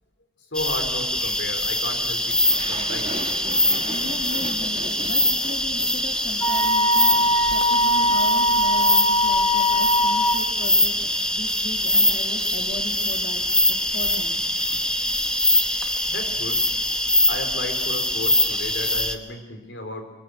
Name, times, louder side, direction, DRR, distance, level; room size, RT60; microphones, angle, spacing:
voice 1, 0.5-2.4 2.7-3.2 14.8-14.9 16.1-16.6 17.3-20.0, left 2 dB, 85° left, 6 dB, 3.8 m, -34 dB
sound 1, 0.5-19.2, left 1 dB, 5° left, 1.0 m, -23 dB
sound 2, 2.1-8.6 8.9-9.3 9.7-15.3, right 2 dB, 35° right, 2.1 m, -41 dB
voice 2, 3.8-14.5, left 1 dB, 50° left, 2 dB, 2.4 m, -37 dB
Wind instrument woodwind instrument, 6.4-10.4, equal, 20° left, 1.5 m, -21 dB
24.0 x 21.5 x 8.1 m, 1.2 s
head